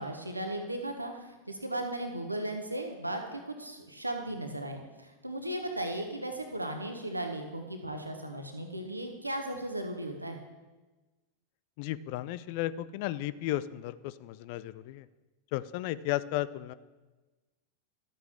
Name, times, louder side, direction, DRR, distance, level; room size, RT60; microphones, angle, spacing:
voice 1, 0.0-10.4, right 1 dB, 85° right, 5 dB, 1.1 m, -36 dB
voice 2, 11.8-15.1 15.5-16.7, left 14 dB, 45° left, 16 dB, 0.4 m, -34 dB
12.0 x 7.7 x 3.6 m, 1.2 s
figure-of-eight pair, 90°, 0 cm